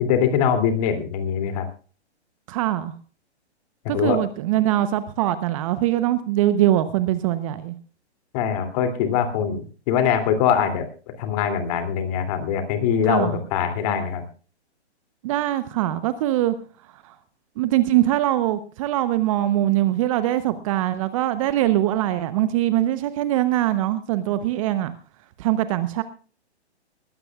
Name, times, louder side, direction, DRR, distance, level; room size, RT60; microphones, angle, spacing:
voice 1, 0.0-1.7 3.9-4.2 8.3-9.6 9.9-10.9 11.2-14.2, left 8 dB, 35° left, 7 dB, 2.9 m, -22 dB
voice 2, 2.5-2.9 3.9-7.7 13.1-13.4 15.2-16.5 17.0-17.1 17.6-24.9 25.4-26.0, right 14 dB, 30° right, 13 dB, 0.9 m, -22 dB
20.5 x 16.0 x 2.4 m, 0.38 s
hypercardioid pair, 135°, 34 cm